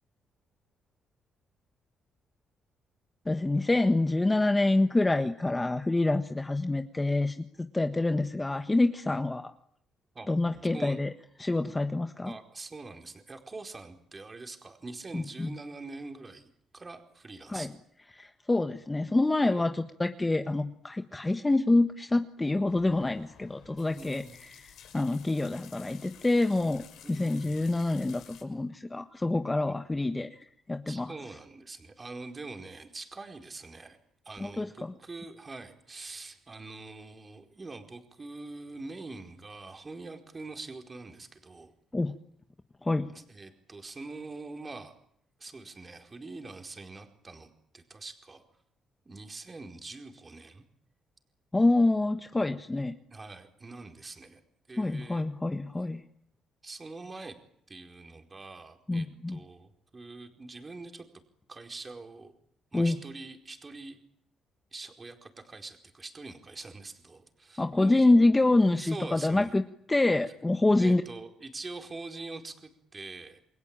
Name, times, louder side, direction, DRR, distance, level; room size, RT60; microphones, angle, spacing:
voice 1, 3.2-9.5 10.3-11.1 11.4-12.3 15.1-15.5 17.5-17.7 18.1-31.1 34.4-34.9 41.9-42.2 42.8-43.1 51.5-52.9 54.8-56.0 58.9-59.4 62.7-63.0 67.6-69.6 69.9-71.0, left 2 dB, 15° left, 8 dB, 1.4 m, -26 dB
voice 2, 12.2-17.7 19.4-19.6 23.9-24.4 27.0-27.6 29.7-29.8 30.9-34.0 34.2-41.7 43.1-44.9 45.4-48.4 49.0-50.6 53.1-54.4 54.7-55.3 56.6-57.4 57.7-61.1 61.5-62.3 62.7-64.0 64.7-68.3 68.7-69.5 70.7-73.4, right 3 dB, 30° right, 5 dB, 4.6 m, -44 dB
sound 1, 22.7-28.4, left 9 dB, 80° left, 6.1 m, -53 dB
29.0 x 21.5 x 9.0 m, 0.71 s
cardioid pair, 90°, 0 cm